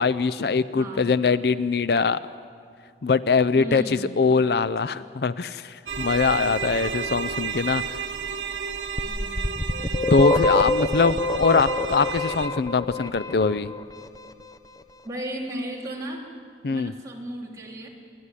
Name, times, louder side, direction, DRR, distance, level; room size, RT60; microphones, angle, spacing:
voice 1, 0.0-2.2 3.0-8.0 10.1-13.7 16.6-16.9, left 4 dB, 60° left, 15 dB, 0.5 m, -22 dB
voice 2, 0.7-1.1 3.5-4.1 9.0-9.5 15.0-16.3 16.7-17.9, right 1 dB, 20° right, -3 dB, 3.1 m, -35 dB
sound 1, 5.9-12.5, right 6 dB, 90° right, 1.0 m, -32 dB
sound 2, 9.0-13.8, left 2 dB, 20° left, 0.6 m, -25 dB
29.0 x 11.0 x 9.9 m, 2.1 s
head